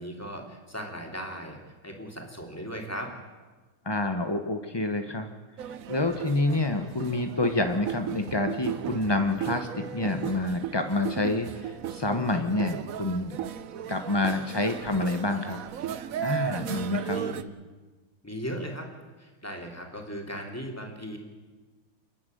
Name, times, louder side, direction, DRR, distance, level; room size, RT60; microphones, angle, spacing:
voice 1, 0.0-1.6 1.8-3.1 16.6-16.8 17.1-17.4 18.2-18.9 19.2-21.2, equal, 5° left, 1 dB, 3.0 m, -37 dB
voice 2, 3.8-5.3 5.6-13.4 13.9-15.6 16.2-17.2, left 2 dB, 30° left, 6 dB, 0.4 m, -28 dB
sound 1, 5.6-17.4, right 9 dB, 70° right, 0.8 m, -36 dB
29.0 x 10.0 x 9.2 m, 1.3 s
omnidirectional pair, 2.4 m